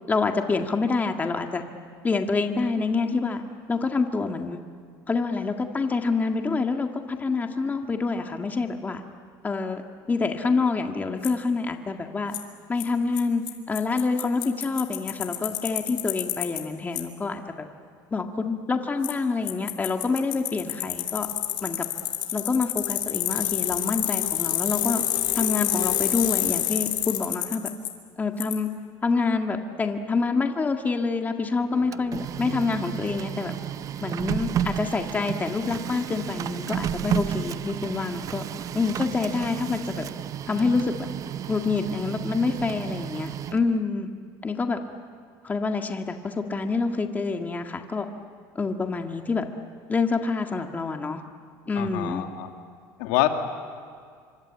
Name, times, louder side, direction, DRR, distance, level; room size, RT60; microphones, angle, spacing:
voice 1, 0.1-1.6 2.0-3.4 3.7-4.6 5.1-9.0 9.4-9.8 10.1-12.4 12.7-13.4 13.7-17.4 18.1-21.3 21.6-21.9 22.3-25.0 25.4-27.7 28.2-28.7 29.0-33.5 34.0-38.4 38.7-39.9 40.5-41.1 41.5-44.1 44.4-44.8 45.4-48.1 48.6-49.4 49.9-51.2 51.7-52.2, left 4 dB, 20° left, 4 dB, 1.9 m, -27 dB
Bicycle, 11.2-11.3 12.3-12.4 12.8-12.9 13.2-13.3 13.5-13.6 13.8-16.6 17.0-17.1 19.0-19.1 19.5-27.9 28.4-28.5, left 13 dB, 65° left, 3.2 m, -27 dB
Printer, 31.7-43.8, right 9 dB, 40° right, 0.7 m, -32 dB
voice 2, 51.8-52.5 53.0-53.3, left 16 dB, 85° left, 5 dB, 2.4 m, -25 dB
26.0 x 25.0 x 8.8 m, 2.1 s
cardioid pair, 120°, 9 cm